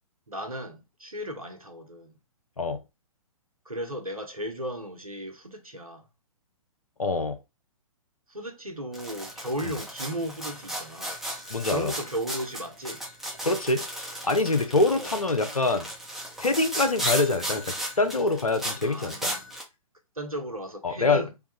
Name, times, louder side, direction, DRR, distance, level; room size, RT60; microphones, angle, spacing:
voice 1, 0.3-2.1 3.7-6.0 8.3-11.1 11.7-13.0 14.9-15.1 18.8-19.5 20.2-21.3, equal, 85° right, 1.1 m, -35 dB
voice 2, 7.0-7.4 9.6-9.8 11.5-11.9 13.4-13.8 14.2-15.9 16.4-19.3 20.8-21.3, left 3 dB, 85° left, 0.8 m, -25 dB
sound 1, 8.9-19.6, right 1 dB, ahead, 0.9 m, -35 dB
3.5 x 2.3 x 4.1 m
figure-of-eight pair, 120°, 18 cm